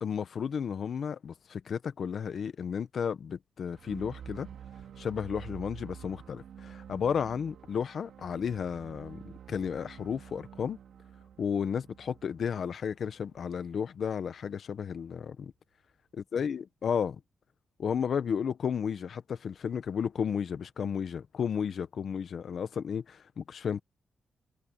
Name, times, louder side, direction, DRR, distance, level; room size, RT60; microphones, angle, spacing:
voice 1, 0.0-4.5 5.0-10.8 11.4-15.5 16.3-17.2 17.8-23.8, left 7 dB, 60° left, 1.2 m, -33 dB
sound 1, 3.7-13.7, right 8 dB, 75° right, 4.5 m, -49 dB
cardioid pair, 120°, 0 cm